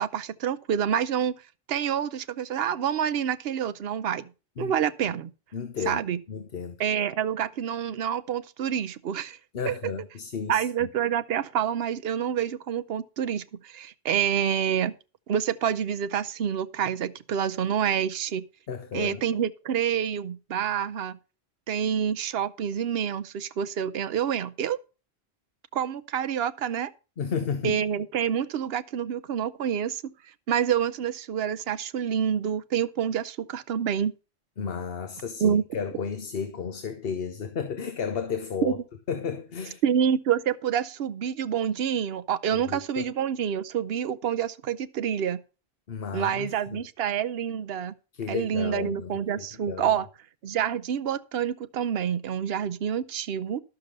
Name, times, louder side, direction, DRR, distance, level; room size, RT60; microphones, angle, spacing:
voice 1, 0.0-1.3 1.7-4.3 4.6-5.3 5.9-6.2 6.8-9.4 9.6-9.9 10.5-14.9 15.3-18.5 18.9-21.2 21.7-24.8 25.7-26.9 27.6-30.0 30.5-34.1 35.4-35.6 38.6-38.7 39.8-45.4 46.1-47.9 48.3-50.1 50.4-53.6, right 8 dB, 70° right, 0.9 m, -27 dB
voice 2, 5.5-6.0 6.3-6.8 9.5-10.9 18.7-19.2 27.2-27.8 34.6-38.8 39.1-39.8 42.5-43.1 45.9-46.8 48.1-49.9, left 6 dB, 70° left, 1.2 m, -33 dB
12.0 x 6.8 x 5.2 m
omnidirectional pair, 1.1 m